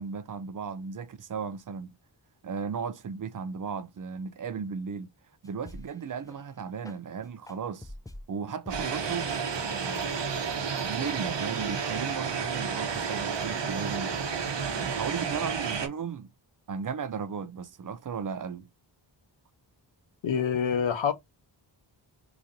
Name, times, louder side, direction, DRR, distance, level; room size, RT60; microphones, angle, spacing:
voice 1, 0.0-1.9 2.4-5.1 5.4-7.9 8.3-10.1 10.4-14.2 14.8-16.3 16.7-18.7, right 6 dB, 45° right, 0.5 m, -36 dB
sound 1, 5.4-6.0 6.3-6.4 6.8-7.0 7.5-8.2 8.7-8.8 9.2-9.4 9.9-10.0 10.5-10.6, left 1 dB, 10° left, 0.4 m, -44 dB
sound 2, 8.7-15.9, right 6 dB, 70° right, 1.0 m, -31 dB
voice 2, 20.2-21.1, left 7 dB, 90° left, 0.8 m, -26 dB
3.6 x 3.0 x 2.6 m
wide cardioid pair, 100°, 44 cm